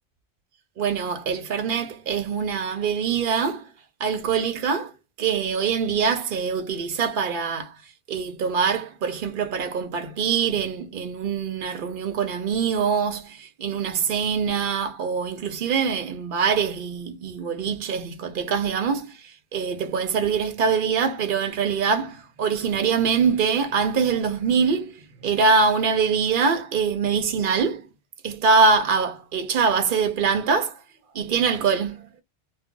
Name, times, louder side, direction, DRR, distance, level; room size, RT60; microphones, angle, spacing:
voice 1, 0.8-3.7 4.0-4.9 5.2-7.8 8.1-27.9 28.2-30.8 31.1-32.1, right 5 dB, 55° right, 0.8 m, -24 dB
2.3 x 2.2 x 3.7 m
omnidirectional pair, 1.2 m